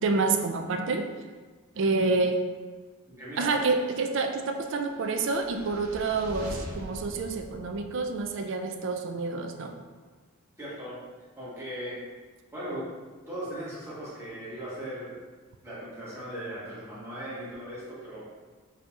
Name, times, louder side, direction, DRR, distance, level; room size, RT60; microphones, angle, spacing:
voice 1, 0.0-1.1 1.8-2.4 3.4-9.7, right 3 dB, 55° right, 5 dB, 0.4 m, -28 dB
voice 2, 3.1-3.6 10.6-11.0 11.4-12.0 12.5-12.9 13.3-15.2 15.6-18.4, right 1 dB, 10° right, -10 dB, 1.1 m, -38 dB
sound 1, 4.9-8.3, equal, 85° right, 0.8 m, -42 dB
5.0 x 2.8 x 2.3 m, 1.4 s
head